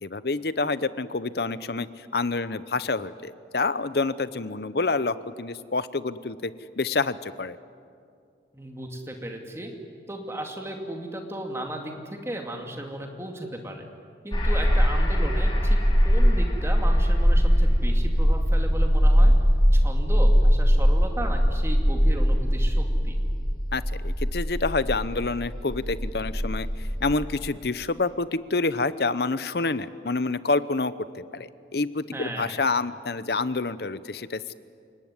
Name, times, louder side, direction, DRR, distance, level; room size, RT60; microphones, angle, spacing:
voice 1, 0.0-6.5 6.8-7.6 23.7-34.5, left 3 dB, 55° left, 15 dB, 0.8 m, -28 dB
voice 2, 8.5-9.7 10.1-13.9 14.2-15.8 16.0-19.3 19.7-23.1 32.1-32.6, right 1 dB, 15° right, 2 dB, 2.5 m, -35 dB
sound 1, 14.3-27.2, equal, 25° left, 4.3 m, -21 dB
29.0 x 18.5 x 9.7 m, 2.4 s
head